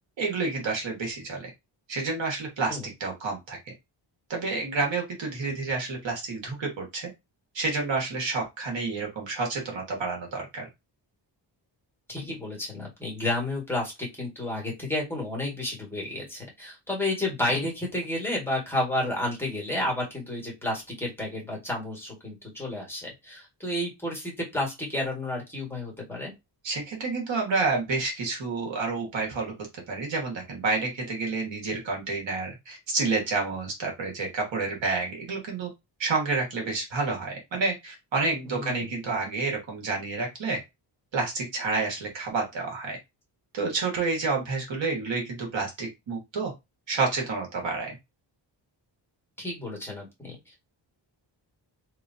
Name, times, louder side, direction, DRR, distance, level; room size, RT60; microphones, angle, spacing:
voice 1, 0.2-1.5 1.9-3.6 4.3-7.1 7.5-10.7 26.6-29.5 29.9-35.7 36.0-40.6 41.1-43.0 43.5-46.5 46.9-47.9, right 3 dB, 80° right, 0 dB, 1.6 m, -29 dB
voice 2, 12.1-26.3 38.4-38.9 49.4-50.7, left 1 dB, 5° left, -1 dB, 1.8 m, -31 dB
3.1 x 3.0 x 2.7 m, 0.22 s
wide cardioid pair, 110°, 45 cm